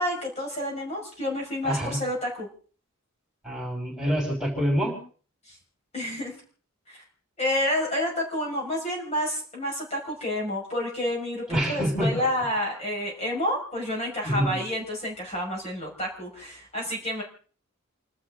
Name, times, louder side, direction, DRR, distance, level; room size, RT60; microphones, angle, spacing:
voice 1, 0.0-2.5 5.5-5.6 5.9-6.4 6.9-7.0 7.4-17.2, left 1 dB, 30° left, -2 dB, 5.7 m, -29 dB
voice 2, 1.6-2.0 3.4-5.0 11.5-12.1 14.2-14.6, equal, 5° right, -1 dB, 6.1 m, -26 dB
29.5 x 12.5 x 3.8 m, 0.42 s
head